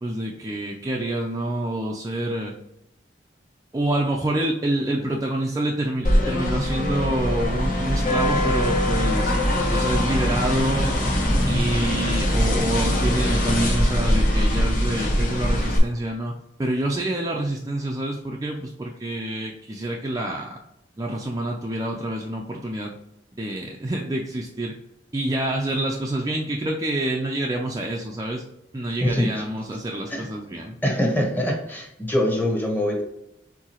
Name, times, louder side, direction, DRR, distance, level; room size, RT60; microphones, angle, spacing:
voice 1, 0.0-2.5 3.7-9.3 9.7-10.9 11.5-16.3 16.6-20.6 21.0-22.9 23.3-24.7 25.1-28.4 28.7-30.8, right 1 dB, 20° right, 0 dB, 0.5 m, -27 dB
sound 1, 6.0-15.8, equal, 50° left, 1.1 m, -22 dB
voice 2, 30.8-33.0, left 1 dB, 10° left, 0 dB, 1.1 m, -23 dB
4.7 x 3.9 x 2.9 m, 0.83 s
head